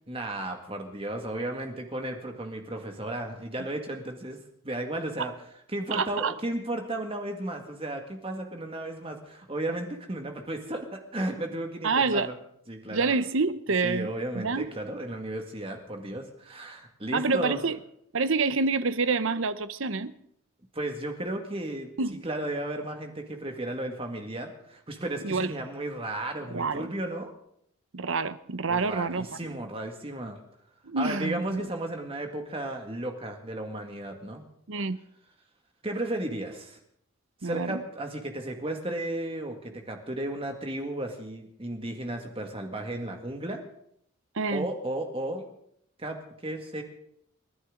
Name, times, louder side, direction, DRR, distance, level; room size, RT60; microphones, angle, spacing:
voice 1, 0.1-4.4 4.6-5.3 5.7-12.4 12.7-13.1 13.8-17.6 20.7-21.9 22.2-27.3 28.7-30.4 31.0-34.4 35.8-36.8 37.4-43.6 44.5-45.4 46.0-46.8, right 1 dB, 25° right, 2.0 m, -34 dB
voice 2, 5.9-6.3 11.8-12.3 12.9-14.1 14.3-14.7 17.1-17.8 18.1-20.1 22.0-22.2 25.2-25.5 26.5-26.9 27.9-29.5 30.8-31.6 34.7-35.0 37.4-37.8 44.4-44.7, right 4 dB, 65° right, 0.8 m, -27 dB
30.0 x 11.0 x 3.9 m
head